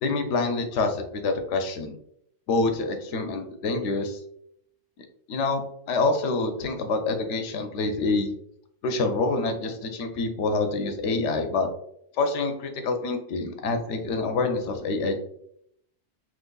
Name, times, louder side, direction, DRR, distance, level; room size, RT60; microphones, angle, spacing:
voice 1, 0.0-2.0 2.5-4.2 5.3-8.3 8.8-11.7 12.2-15.2, left 3 dB, 80° left, 6 dB, 0.9 m, -26 dB
3.7 x 2.9 x 2.2 m, 0.72 s
omnidirectional pair, 1.2 m